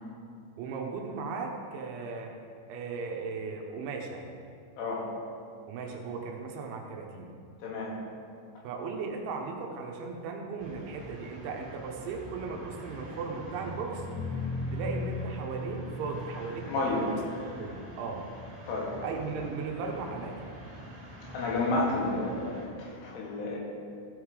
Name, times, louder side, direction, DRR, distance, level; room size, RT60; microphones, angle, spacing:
voice 1, 0.6-2.3 2.7-4.2 5.7-7.3 8.6-14.0 14.7-17.2 17.6-18.3 19.0-20.6, right 4 dB, 75° right, 1 dB, 3.1 m, -37 dB
voice 2, 4.8-5.1 7.6-7.9 16.7-17.0 18.7-18.9 21.3-23.6, left 2 dB, 75° left, -4 dB, 4.3 m, -31 dB
sound 1, 10.6-22.7, left 1 dB, 15° right, 1.7 m, -41 dB
15.5 x 5.6 x 4.8 m, 2.3 s
omnidirectional pair, 5.8 m